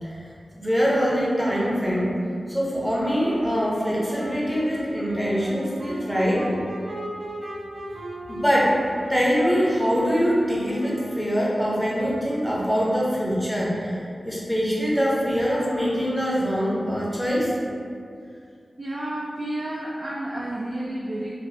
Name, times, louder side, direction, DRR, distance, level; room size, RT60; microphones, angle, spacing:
voice 1, 0.0-2.2 2.5-6.5 8.3-8.8 9.1-17.5, equal, ahead, -6 dB, 0.7 m, -24 dB
Wind instrument woodwind instrument, 3.0-11.4, equal, 90° right, 0.8 m, -36 dB
voice 2, 18.8-21.3, right 1 dB, 45° right, -5 dB, 0.4 m, -31 dB
3.9 x 2.3 x 2.7 m, 2.4 s
wide cardioid pair, 90°, 0 cm